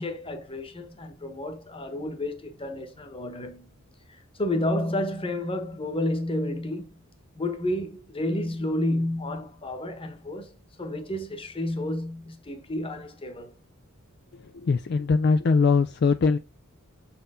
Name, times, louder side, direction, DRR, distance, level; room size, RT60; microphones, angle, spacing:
voice 1, 0.0-3.7 4.1-6.9 7.3-10.5 10.8-13.5, left 1 dB, 25° left, 1.1 m, -30 dB
voice 2, 14.3-16.4, left 4 dB, 50° left, 0.4 m, -22 dB
6.8 x 4.5 x 3.7 m
head